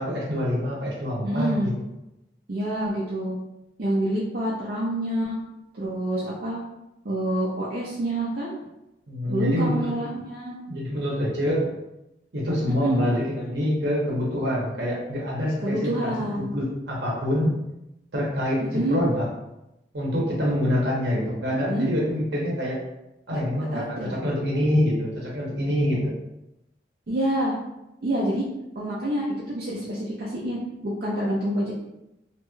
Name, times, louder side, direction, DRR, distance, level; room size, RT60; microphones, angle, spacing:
voice 1, 0.0-1.7 9.1-10.0 10.7-11.7 12.3-17.5 18.1-19.2 19.9-22.8 23.3-26.1, equal, 75° right, -4 dB, 0.9 m, -26 dB
voice 2, 1.2-1.7 2.5-3.4 3.8-5.4 5.7-6.6 7.0-8.5 9.3-10.6 12.6-13.1 15.6-16.5 18.7-19.0 21.7-21.9 23.3-23.4 23.7-24.1 27.1-27.6 28.0-28.4 28.8-30.6 30.8-31.7, right 1 dB, 55° right, -6 dB, 0.5 m, -27 dB
3.0 x 2.9 x 2.3 m, 0.90 s
head